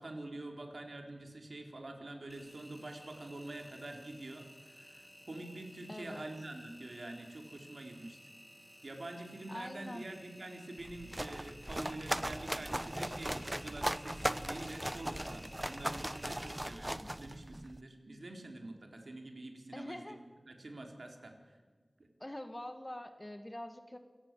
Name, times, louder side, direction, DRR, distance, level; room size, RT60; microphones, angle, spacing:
voice 1, 0.0-8.2 8.8-20.1 20.5-21.6 22.0-22.1, right 2 dB, 70° right, 3 dB, 4.0 m, -46 dB
Engine, 2.3-16.6, equal, 5° left, 5.9 m, -56 dB
voice 2, 5.9-6.2 9.5-10.1 19.7-20.2 22.2-24.0, left 1 dB, 25° left, 8 dB, 1.9 m, -44 dB
sound 1, 10.8-17.8, right 1 dB, 20° right, 0.7 m, -38 dB
28.0 x 17.5 x 7.6 m, 1.4 s
wide cardioid pair, 60°, 0 cm